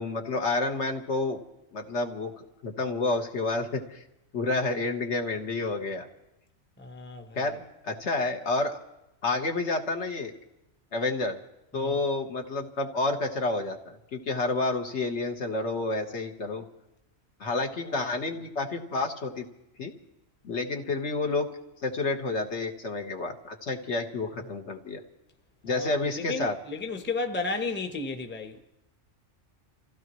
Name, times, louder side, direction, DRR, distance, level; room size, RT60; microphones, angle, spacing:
voice 1, 0.0-1.4 1.7-4.0 4.3-6.1 7.3-8.8 9.2-10.3 10.9-11.4 11.7-16.6 17.4-19.5 19.8-19.9 20.4-21.5 21.8-25.0 25.6-26.5, left 3 dB, 65° left, 1.6 m, -29 dB
voice 2, 6.8-7.6 11.7-12.0 17.8-18.1 25.7-28.6, left 3 dB, 10° left, 0.8 m, -34 dB
27.5 x 16.0 x 3.1 m
omnidirectional pair, 1.3 m